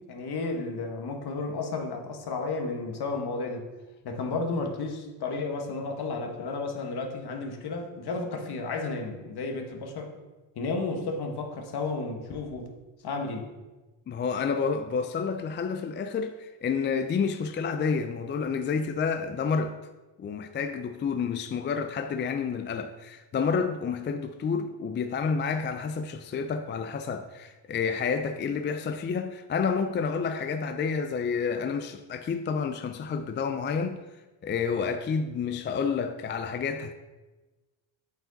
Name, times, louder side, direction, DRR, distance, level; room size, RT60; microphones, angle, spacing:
voice 1, 0.0-3.6 4.0-10.1 10.6-12.7 13.0-13.5, left 3 dB, 55° left, 1.4 m, -32 dB
voice 2, 14.1-19.8 20.2-36.9, left 5 dB, 25° left, 0.3 m, -29 dB
8.0 x 4.5 x 4.0 m
cardioid pair, 85°, 47 cm